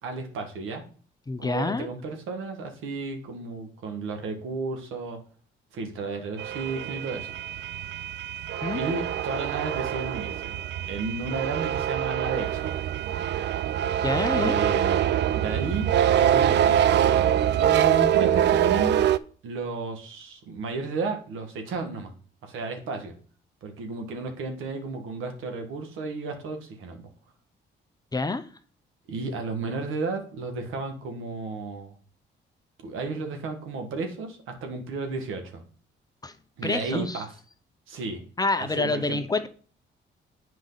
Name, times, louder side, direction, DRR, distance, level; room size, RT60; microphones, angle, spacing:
voice 1, 0.0-0.8 1.4-5.2 5.7-7.3 8.7-12.8 14.4-19.0 19.4-22.1 22.4-23.1 23.6-27.1 29.1-31.9 32.8-35.6 36.6-37.3 37.9-38.2 38.6-39.2, right 3 dB, 85° right, 1.5 m, -33 dB
voice 2, 1.3-1.9 8.6-8.8 14.0-14.6 28.1-28.4 36.2-36.3 36.6-37.2 38.4-39.5, left 3 dB, 20° left, 0.6 m, -27 dB
sound 1, 6.4-19.2, right 10 dB, 60° right, 0.4 m, -24 dB
8.0 x 5.0 x 3.9 m
cardioid pair, 90°, 20 cm